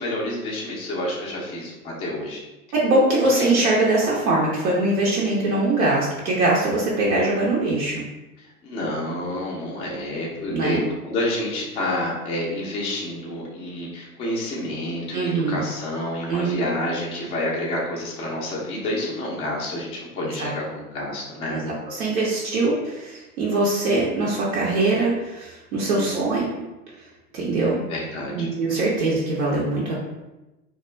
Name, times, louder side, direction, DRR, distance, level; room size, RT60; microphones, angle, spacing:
voice 1, 0.0-2.4 3.1-3.5 8.4-21.6 25.9-26.1 27.9-28.5, left 1 dB, 15° left, -4 dB, 0.4 m, -29 dB
voice 2, 2.8-8.0 10.5-10.8 15.1-15.7 16.3-16.5 20.4-20.5 21.5-26.5 27.3-27.8 28.3-30.0, right 2 dB, 65° right, -4 dB, 0.8 m, -22 dB
2.4 x 2.2 x 3.1 m, 1.0 s
figure-of-eight pair, 95°, 46 cm